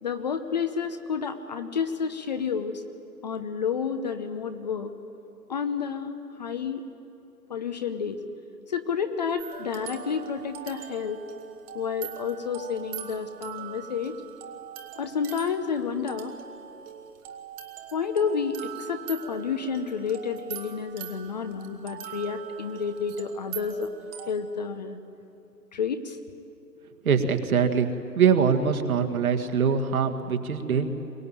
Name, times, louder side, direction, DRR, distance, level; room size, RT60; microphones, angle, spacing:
voice 1, 0.0-2.8 3.2-4.9 5.5-6.8 7.5-8.2 8.7-11.2 11.7-14.1 15.0-16.4 17.9-23.9 24.3-25.0 25.7-26.2, left 6 dB, 25° left, 8 dB, 0.8 m, -30 dB
sound 1, 9.4-24.3, right 10 dB, 15° right, 1.0 m, -42 dB
voice 2, 27.0-27.9 28.2-30.9, right 6 dB, 55° right, 6 dB, 2.1 m, -23 dB
23.0 x 19.5 x 9.0 m, 2.7 s
figure-of-eight pair, 145°, 50 cm